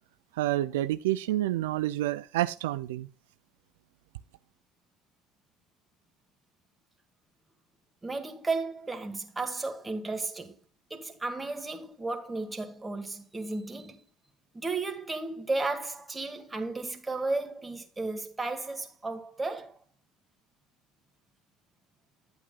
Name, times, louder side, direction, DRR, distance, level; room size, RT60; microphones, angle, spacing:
voice 1, 0.3-3.1, right 15 dB, 85° right, 0.4 m, -29 dB
voice 2, 8.0-10.6 10.9-14.0 14.5-19.8, right 3 dB, 15° right, 2.0 m, -34 dB
10.5 x 8.4 x 2.4 m
hypercardioid pair, 80°, 0 cm